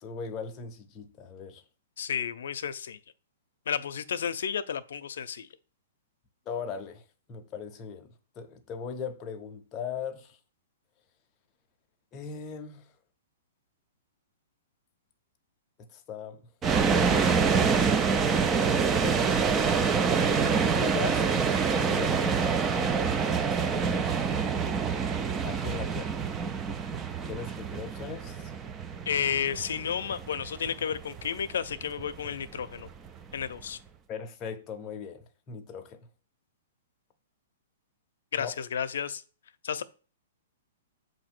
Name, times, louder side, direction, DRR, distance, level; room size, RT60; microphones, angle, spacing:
voice 1, 0.0-1.6 6.5-10.4 12.1-12.9 15.9-16.5 16.9-17.7 18.4-19.8 20.7-24.7 25.4-26.2 27.2-28.5 34.1-36.1 38.4-38.5, left 5 dB, 20° left, 0.7 m, -39 dB
voice 2, 2.0-3.0 3.7-5.5 29.1-32.9 33.3-33.8 38.3-39.2 39.6-39.8, left 7 dB, 75° left, 0.6 m, -32 dB
sound 1, 16.6-33.6, right 5 dB, 15° right, 0.3 m, -26 dB
7.6 x 2.7 x 6.0 m
hypercardioid pair, 165°, 0 cm